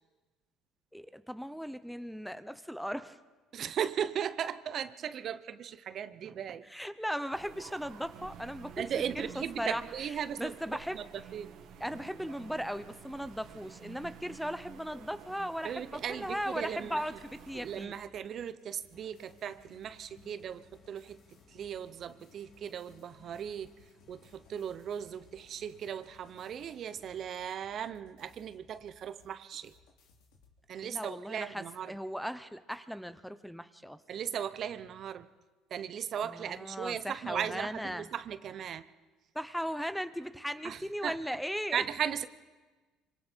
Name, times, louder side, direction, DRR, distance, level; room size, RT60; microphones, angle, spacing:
voice 1, 0.9-3.2 6.6-8.9 9.1-9.8 10.4-11.0 11.8-18.0 30.8-34.0 36.2-38.1 39.3-41.8, equal, ahead, 13 dB, 0.8 m, -37 dB
voice 2, 3.5-6.6 8.8-11.0 11.3-11.5 15.6-17.0 17.5-21.2 21.5-23.7 24.1-29.7 30.7-31.9 34.1-35.3 35.7-38.8 40.6-41.2 41.7-42.3, right 8 dB, 50° right, 13 dB, 0.9 m, -37 dB
sound 1, 7.3-17.9, right 8 dB, 65° right, 2.3 m, -51 dB
sound 2, 16.1-30.6, left 4 dB, 80° left, 3.3 m, -65 dB
sound 3, 18.9-27.3, left 3 dB, 60° left, 5.4 m, -62 dB
25.5 x 25.0 x 4.6 m, 1.3 s
supercardioid pair, 100°, 0 cm